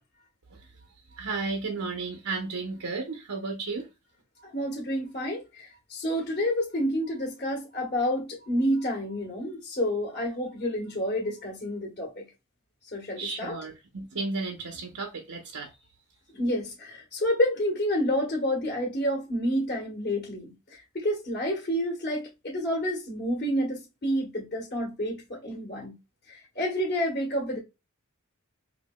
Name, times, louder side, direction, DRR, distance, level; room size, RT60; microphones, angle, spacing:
voice 1, 1.2-3.9 13.2-15.7, right 3 dB, 80° right, 0.8 m, -33 dB
voice 2, 4.4-12.2 12.9-13.5 16.3-25.9 26.3-27.6, equal, 45° left, 1.2 m, -29 dB
4.7 x 2.8 x 2.3 m
head